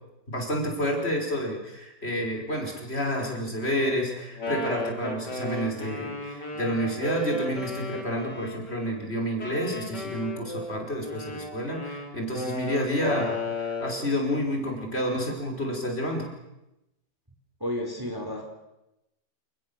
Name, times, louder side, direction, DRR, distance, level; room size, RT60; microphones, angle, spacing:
voice 1, 0.3-16.3, equal, 35° left, 1 dB, 5.8 m, -29 dB
Wind instrument woodwind instrument, 4.2-8.9 9.4-14.1, left 2 dB, 75° left, 4.5 m, -34 dB
voice 2, 17.6-18.4, left 1 dB, 10° right, 2 dB, 3.7 m, -31 dB
29.0 x 20.5 x 7.2 m, 0.92 s
omnidirectional pair, 1.8 m